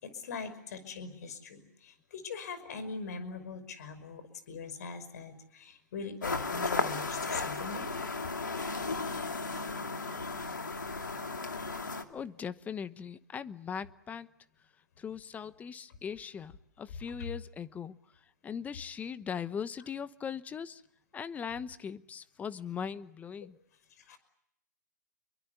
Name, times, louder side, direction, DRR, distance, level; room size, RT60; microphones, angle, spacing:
voice 1, 0.0-7.9 24.1-24.2, left 4 dB, 60° left, 5.6 m, -42 dB
sound 1, 6.2-12.0, left 3 dB, 90° left, 2.6 m, -35 dB
voice 2, 12.1-14.3 15.0-18.0 18.4-20.8 21.1-23.6, left 7 dB, 15° left, 1.0 m, -39 dB
29.0 x 23.5 x 8.2 m
hypercardioid pair, 120°, 10 cm